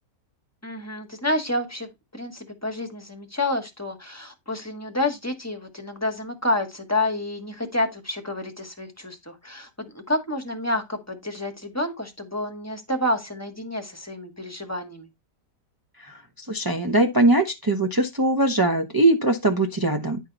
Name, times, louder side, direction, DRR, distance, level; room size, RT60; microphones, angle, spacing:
voice 1, 0.6-15.1, left 1 dB, 10° left, 1.2 m, -29 dB
voice 2, 16.5-20.2, right 2 dB, 30° right, 0.4 m, -21 dB
10.0 x 4.6 x 3.9 m
omnidirectional pair, 1.8 m